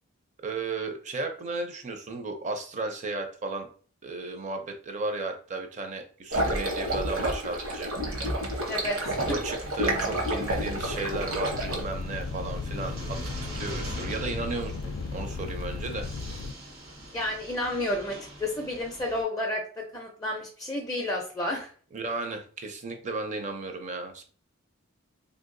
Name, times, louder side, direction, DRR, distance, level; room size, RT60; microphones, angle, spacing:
voice 1, 0.4-3.7 4.0-7.9 9.2-13.2 13.6-16.1 21.9-24.2, right 3 dB, 35° right, 6 dB, 0.5 m, -34 dB
sound 1, 6.3-11.8, right 1 dB, 70° right, 0.9 m, -29 dB
sound 2, 8.4-19.2, equal, 90° right, 1.3 m, -42 dB
voice 2, 8.7-9.4 17.1-21.7, left 1 dB, 15° left, 0 dB, 0.4 m, -31 dB
sound 3, 10.5-16.5, left 4 dB, 85° left, 0.3 m, -36 dB
3.3 x 2.7 x 2.5 m, 0.42 s
head